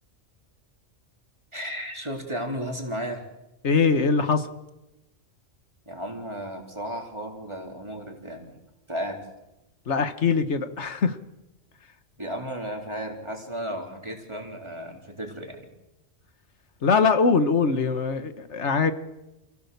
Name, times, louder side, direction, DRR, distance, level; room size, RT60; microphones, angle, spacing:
voice 1, 1.5-3.3 5.9-8.6 8.9-9.3 12.2-15.7, equal, 25° right, 2 dB, 3.4 m, -34 dB
voice 2, 3.6-4.5 9.9-11.2 16.8-18.9, left 5 dB, 80° left, 10 dB, 1.7 m, -22 dB
28.0 x 17.0 x 6.8 m, 0.98 s
omnidirectional pair, 1.2 m